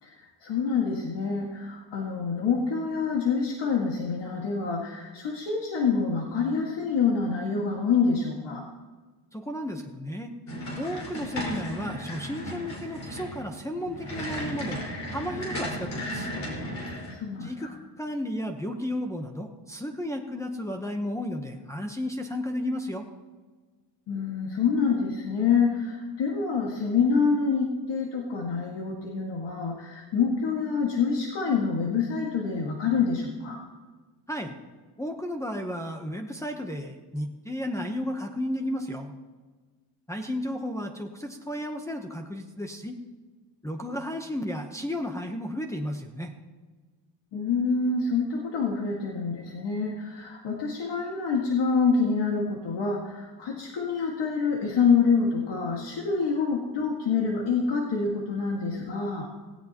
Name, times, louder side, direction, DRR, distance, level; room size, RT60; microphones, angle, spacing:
voice 1, 0.0-8.7 17.1-17.7 24.1-33.6 47.3-59.3, left 5 dB, 70° left, -1 dB, 2.0 m, -26 dB
voice 2, 9.3-10.3 10.8-14.8 15.1-16.3 17.4-17.7 18.0-23.0 34.3-34.6 35.0-39.1 40.1-43.0 43.6-46.3, left 1 dB, 5° left, 1 dB, 0.9 m, -33 dB
sound 1, 10.5-17.1, equal, 40° left, 4.9 m, -35 dB
17.5 x 17.0 x 3.0 m, 1.4 s
cardioid pair, 150°, 42 cm